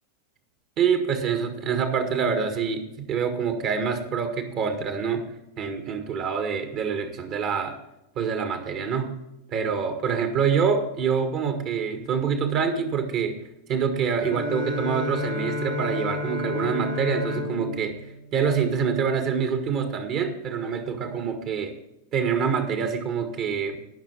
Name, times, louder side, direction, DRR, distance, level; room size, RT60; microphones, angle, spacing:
voice 1, 0.8-5.2 5.6-7.7 8.1-9.1 9.5-13.4 13.7-17.9 18.3-21.7 22.1-23.8, right 6 dB, 40° right, 7 dB, 1.7 m, -26 dB
Bowed string instrument, 14.2-19.4, left 3 dB, 85° right, 3.8 m, -32 dB
17.0 x 6.4 x 4.5 m, 0.88 s
figure-of-eight pair, 90°, 0 cm